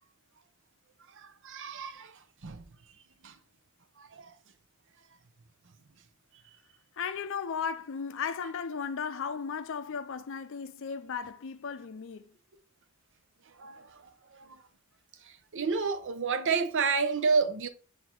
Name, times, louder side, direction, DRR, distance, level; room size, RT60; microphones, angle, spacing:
voice 1, 1.2-2.1 2.4-2.6 3.2-3.3 4.0-4.3 13.6-13.8 14.3-14.4 15.5-17.7, right 5 dB, 60° right, 0.7 m, -29 dB
voice 2, 7.0-12.3, left 6 dB, 60° left, 0.5 m, -35 dB
8.0 x 2.7 x 4.3 m
head